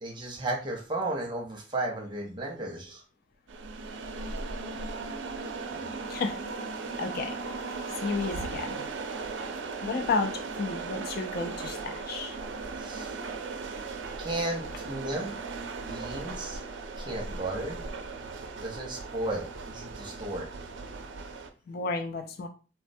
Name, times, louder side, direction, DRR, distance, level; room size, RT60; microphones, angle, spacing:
voice 1, 0.0-3.0 5.9-6.0 12.8-13.2 14.2-15.3 15.7-16.6 17.0-17.8 18.3-20.5, right 2 dB, 25° right, 0 dB, 0.6 m, -34 dB
sound 1, 3.5-21.5, right 4 dB, 75° right, 0.4 m, -37 dB
voice 2, 7.0-7.3 8.0-8.9 9.8-12.3 21.7-22.5, left 4 dB, 55° left, 5 dB, 0.3 m, -32 dB
3.3 x 2.1 x 2.6 m, 0.36 s
head